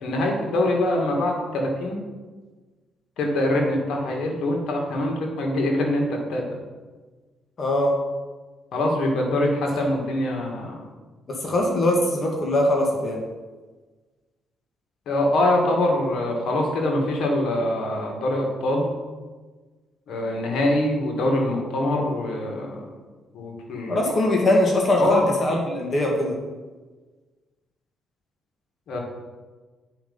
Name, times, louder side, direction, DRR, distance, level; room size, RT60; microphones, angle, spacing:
voice 1, 0.0-2.0 3.2-6.5 8.7-10.8 15.1-18.9 20.1-22.9 23.3-24.0 25.0-25.3 28.9-29.0, left 1 dB, 75° left, 0 dB, 2.2 m, -24 dB
voice 2, 7.6-7.9 9.8-9.9 11.3-13.2 23.9-26.4, left 1 dB, 45° left, 0 dB, 1.9 m, -22 dB
8.9 x 5.4 x 5.5 m, 1.3 s
cardioid pair, 90°, 0 cm